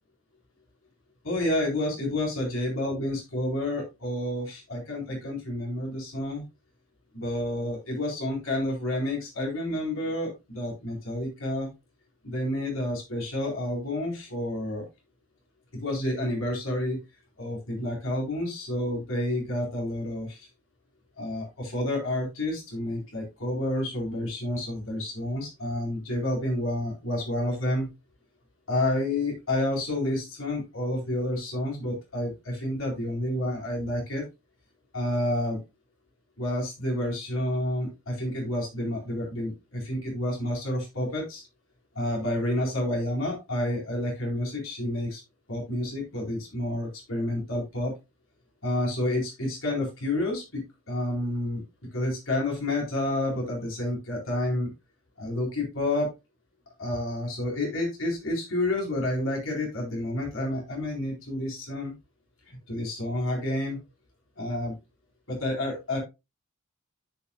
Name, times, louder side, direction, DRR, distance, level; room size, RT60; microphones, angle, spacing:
voice 1, 1.2-6.4 7.1-11.7 12.2-14.8 15.8-17.0 17.4-20.5 21.2-27.9 28.7-34.2 34.9-35.6 36.4-41.4 41.9-45.2 45.5-47.9 48.6-50.6 50.9-51.6 51.9-54.7 55.2-56.1 56.8-61.9 62.5-63.8 64.4-64.7 65.3-66.0, left 1 dB, 70° left, -2 dB, 4.0 m, -29 dB
13.5 x 5.8 x 2.3 m, 0.24 s
head